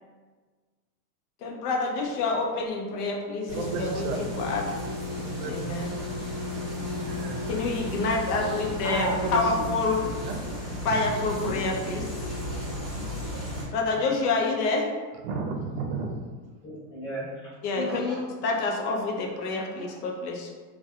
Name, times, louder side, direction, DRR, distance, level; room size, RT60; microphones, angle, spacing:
voice 1, 1.4-4.8 5.4-5.9 7.5-10.0 10.8-12.3 13.7-14.9 17.6-20.5, left 3 dB, 75° left, 1 dB, 0.7 m, -28 dB
sound 1, 3.5-13.6, left 1 dB, 10° right, 0.8 m, -34 dB
voice 2, 3.5-4.2 5.2-5.9 7.0-7.4 8.8-9.7 10.2-10.4 10.8-11.0 11.4-11.5 15.2-16.1, right 4 dB, 65° right, 2 dB, 0.6 m, -33 dB
voice 3, 16.6-18.2 19.0-19.4 19.7-20.0, left 1 dB, 10° left, -10 dB, 0.3 m, -37 dB
2.2 x 2.2 x 2.7 m, 1.4 s
supercardioid pair, 150°, 47 cm